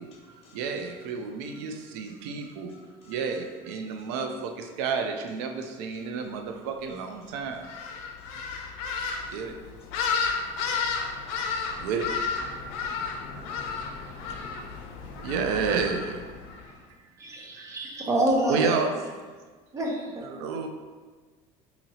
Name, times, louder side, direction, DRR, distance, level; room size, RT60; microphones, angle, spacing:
voice 1, 0.0-3.5 3.8-4.4 5.0-5.1 5.6-9.3, left 2 dB, 45° left, -2 dB, 0.9 m, -61 dB
voice 2, 0.5-2.8 3.1-7.7 9.3-9.6 11.7-12.2 14.3-14.4 15.2-16.2 17.2-17.8 18.5-18.9 20.2-20.7, right 5 dB, 90° right, 5 dB, 0.4 m, -31 dB
sound 1, 7.6-16.7, left 5 dB, 85° left, 0.5 m, -32 dB
voice 3, 17.2-18.9 19.7-20.2, right 1 dB, 20° right, -1 dB, 0.5 m, -27 dB
2.8 x 2.8 x 4.1 m, 1.4 s
cardioid pair, 160°, 14 cm